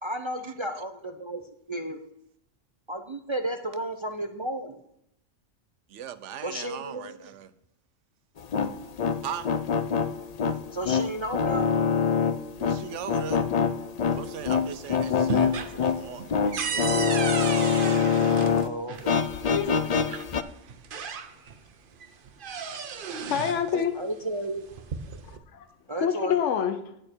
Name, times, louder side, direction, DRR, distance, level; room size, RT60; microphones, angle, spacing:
voice 1, 0.0-1.4 1.7-2.1 2.9-4.8 6.4-7.3 10.7-11.7 18.6-19.3 24.0-24.7 25.9-26.4, right 1 dB, 35° right, 0.5 m, -33 dB
voice 2, 5.9-7.5 9.2-9.5 12.6-13.5 14.1-17.0 20.1-20.9 23.7-23.9, right 9 dB, 80° right, 1.0 m, -39 dB
sound 1, 8.4-18.7 19.0-20.4, left 6 dB, 55° left, 0.4 m, -25 dB
sound 2, 14.1-14.8 15.1-19.1 20.2-20.3 20.7-21.6 22.0-23.7 24.6-25.4, right 6 dB, 50° right, 0.9 m, -34 dB
voice 3, 19.4-19.9 22.5-23.0 23.3-24.0 25.5-25.7 26.0-26.8, left 8 dB, 75° left, 1.1 m, -27 dB
10.0 x 8.6 x 4.5 m
omnidirectional pair, 1.3 m